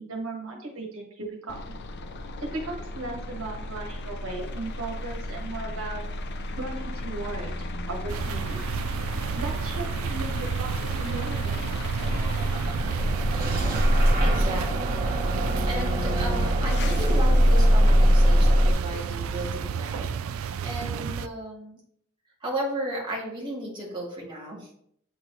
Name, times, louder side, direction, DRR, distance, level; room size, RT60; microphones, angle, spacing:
voice 1, 0.0-1.7 2.4-6.0 6.6-7.5 7.9-8.6 9.3-11.6, right 2 dB, 85° right, 0 dB, 1.6 m, -36 dB
sound 1, 1.5-19.6, left 1 dB, 55° left, 0.5 m, -36 dB
sound 2, 8.1-21.3, right 7 dB, 70° right, 0.3 m, -31 dB
Bus / Engine starting, 12.0-18.7, equal, 50° right, 1.5 m, -22 dB
voice 2, 14.2-15.2 15.6-21.8 22.4-24.7, right 1 dB, 25° right, -4 dB, 1.9 m, -35 dB
8.4 x 3.9 x 3.1 m, 0.67 s
head